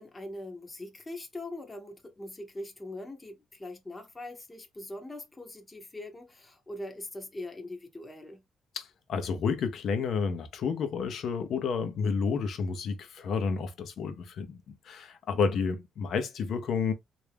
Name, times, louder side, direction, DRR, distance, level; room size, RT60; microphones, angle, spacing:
voice 1, 0.0-8.4, left 1 dB, 20° left, 0.8 m, -42 dB
voice 2, 8.7-16.9, left 5 dB, 70° left, 0.8 m, -30 dB
3.3 x 2.6 x 3.3 m
cardioid pair, 90°, 0 cm